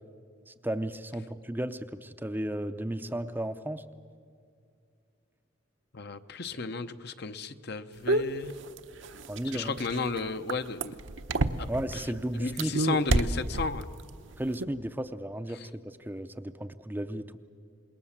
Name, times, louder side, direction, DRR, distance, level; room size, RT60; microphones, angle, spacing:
voice 1, 0.5-3.8 9.3-9.8 11.7-12.7 14.4-17.4, right 1 dB, 10° right, 9 dB, 0.6 m, -34 dB
voice 2, 5.9-8.5 9.4-11.0 11.6-11.7 11.9-12.0 12.4-13.8 15.5-15.7, left 4 dB, 55° left, 9 dB, 0.9 m, -33 dB
sound 1, 8.1-12.0 12.5-14.0 14.3-14.6, right 2 dB, 65° right, 0.9 m, -28 dB
26.5 x 21.0 x 7.4 m, 2.4 s
head